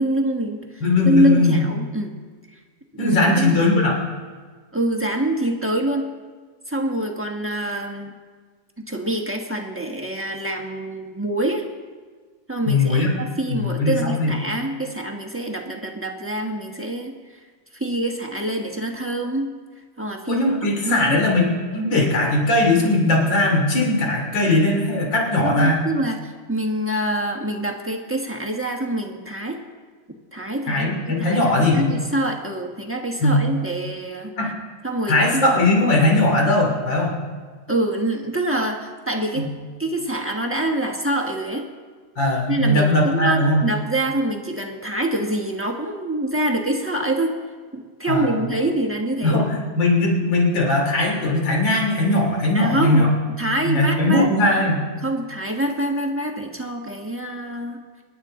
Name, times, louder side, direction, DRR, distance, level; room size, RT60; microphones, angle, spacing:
voice 1, 0.0-2.1 2.5-2.6 2.9-3.6 4.7-6.1 6.7-8.1 8.8-11.7 12.5-17.1 17.7-19.5 20.0-20.4 20.8-21.2 25.4-29.6 30.3-34.3 34.8-35.6 37.7-39.5 39.8-41.7 42.5-47.3 47.7-49.4 52.5-53.0 53.4-54.3 55.0-57.8, right 1 dB, 10° right, 0 dB, 1.0 m, -25 dB
voice 2, 0.8-1.6 3.0-4.0 12.7-13.1 13.5-14.3 20.3-25.8 30.7-31.9 33.2-33.4 34.4-34.5 35.1-37.2 39.4-39.5 42.2-43.6 48.1-48.4 49.2-53.1 53.6-54.9, left 2 dB, 75° left, -1 dB, 3.5 m, -19 dB
25.5 x 11.0 x 3.8 m, 1.5 s
omnidirectional pair, 2.0 m